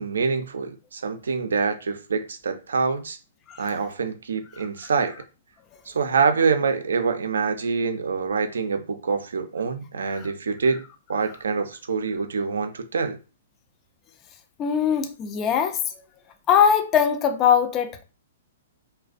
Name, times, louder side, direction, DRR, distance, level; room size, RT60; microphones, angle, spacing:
voice 1, 0.0-3.2 3.6-5.1 5.9-10.8 11.1-13.2, right 5 dB, 85° right, 0.4 m, -25 dB
voice 2, 14.6-15.8 16.5-18.0, left 8 dB, 25° left, 0.3 m, -21 dB
2.4 x 2.1 x 2.4 m
hypercardioid pair, 135°, 0 cm